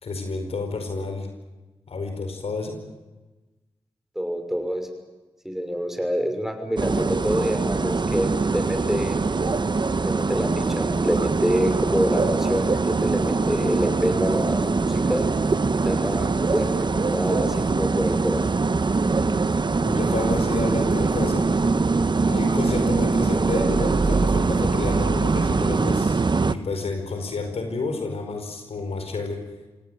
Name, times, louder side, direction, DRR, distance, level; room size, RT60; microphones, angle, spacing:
voice 1, 0.0-1.3 1.9-2.8 19.8-21.5 22.3-26.2 26.4-29.4, left 3 dB, 75° left, 5 dB, 4.8 m, -30 dB
voice 2, 4.1-4.9 5.4-9.2 10.0-15.2 15.8-16.7 16.9-18.6, equal, 5° right, 6 dB, 6.1 m, -26 dB
sound 1, 6.8-26.5, right 4 dB, 45° right, 1.2 m, -23 dB
26.5 x 17.5 x 9.2 m, 1.2 s
cardioid pair, 40°, 10 cm